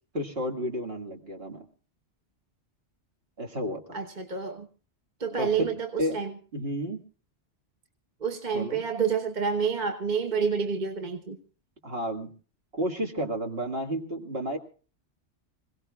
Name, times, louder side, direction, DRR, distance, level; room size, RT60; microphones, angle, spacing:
voice 1, 0.1-1.7 3.4-4.0 5.4-5.7 6.0-6.2 6.5-7.0 8.5-8.8 11.8-12.3 12.7-14.6, equal, 60° right, 2.3 m, -31 dB
voice 2, 3.9-4.7 5.2-6.3 8.2-11.4, right 6 dB, 40° right, 1.2 m, -28 dB
26.0 x 17.5 x 2.4 m
omnidirectional pair, 1.2 m